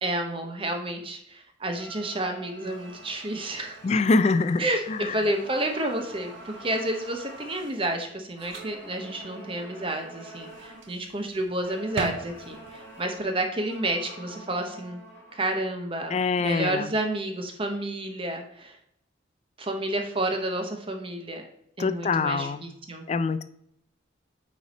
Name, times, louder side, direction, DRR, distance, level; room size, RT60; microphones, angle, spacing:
voice 1, 0.0-3.8 4.6-15.0 15.3-16.1 16.4-18.8 19.6-21.4 21.8-23.0, right 1 dB, 25° right, 4 dB, 0.7 m, -30 dB
sound 1, 1.7-4.8 5.2-7.8 8.3-11.0 11.6-15.8, right 1 dB, 10° left, 2.2 m, -47 dB
sound 2, 2.6-13.0, right 4 dB, 75° right, 0.8 m, -43 dB
voice 2, 3.8-5.2 16.1-16.9 21.8-22.7 23.1-23.4, left 3 dB, 35° left, 12 dB, 0.3 m, -24 dB
9.0 x 3.2 x 4.0 m, 0.77 s
head